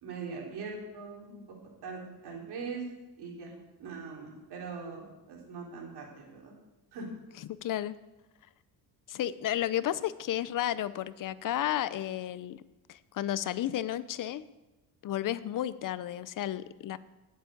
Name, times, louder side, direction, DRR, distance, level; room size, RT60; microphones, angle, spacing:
voice 1, 0.0-1.4 1.8-2.8 3.2-3.5 3.8-6.5 6.9-7.1, right 4 dB, 70° right, -1 dB, 3.3 m, -41 dB
voice 2, 7.6-8.0 9.1-12.6 12.9-14.4 15.0-17.0, left 12 dB, 50° left, 16 dB, 0.6 m, -32 dB
8.3 x 7.2 x 8.7 m, 1.1 s
cardioid pair, 125°, 40 cm